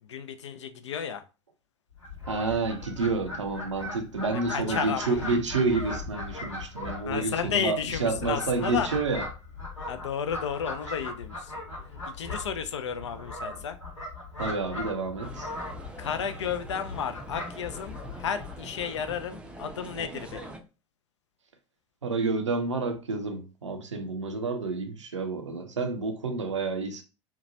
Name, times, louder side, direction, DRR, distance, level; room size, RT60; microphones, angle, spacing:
voice 1, 0.1-1.2 4.5-5.2 7.1-8.9 9.9-11.5 12.0-13.8 16.0-20.5, left 7 dB, 70° left, 0.4 m, -32 dB
Fowl, 2.0-19.3, left 2 dB, 85° left, 1.0 m, -39 dB
voice 2, 2.2-9.2 14.4-15.5 22.0-27.0, right 3 dB, 80° right, 0.5 m, -29 dB
sound 1, 15.2-20.6, right 2 dB, 5° right, 0.4 m, -44 dB
2.8 x 2.2 x 2.6 m
figure-of-eight pair, 80°, 15 cm